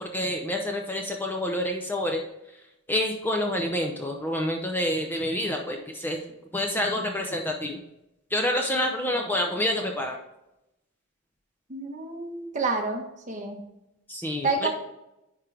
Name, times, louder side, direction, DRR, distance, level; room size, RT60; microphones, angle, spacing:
voice 1, 0.0-2.2 2.9-6.2 6.5-7.8 8.3-10.2 14.1-14.7, left 1 dB, 10° left, 2 dB, 0.6 m, -28 dB
voice 2, 11.7-13.6 14.4-14.7, right 3 dB, 35° right, 2 dB, 1.1 m, -29 dB
10.5 x 3.8 x 3.3 m, 0.90 s
head